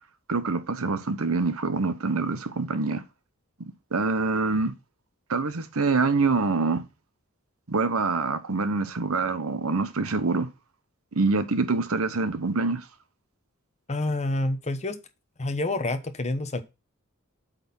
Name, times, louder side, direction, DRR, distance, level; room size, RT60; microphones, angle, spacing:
voice 1, 0.3-3.0 3.9-4.7 5.3-6.8 7.7-10.5 11.1-12.8, right 3 dB, 80° right, 1.0 m, -25 dB
voice 2, 13.9-15.0 15.4-16.6, left 2 dB, 30° left, 1.0 m, -28 dB
8.2 x 4.3 x 5.4 m
head